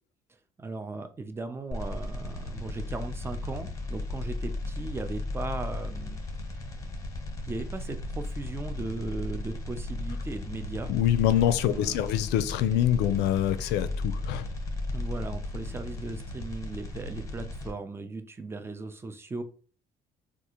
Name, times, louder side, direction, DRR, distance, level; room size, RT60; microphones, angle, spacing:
voice 1, 0.6-6.2 7.4-10.9 11.7-12.2 14.9-19.4, right 3 dB, 15° right, 0.4 m, -37 dB
sound 1, 1.7-17.7, left 2 dB, 20° left, 1.0 m, -35 dB
voice 2, 10.9-14.5, left 11 dB, 90° left, 0.4 m, -25 dB
3.6 x 2.4 x 2.9 m
cardioid pair, 110°, 17 cm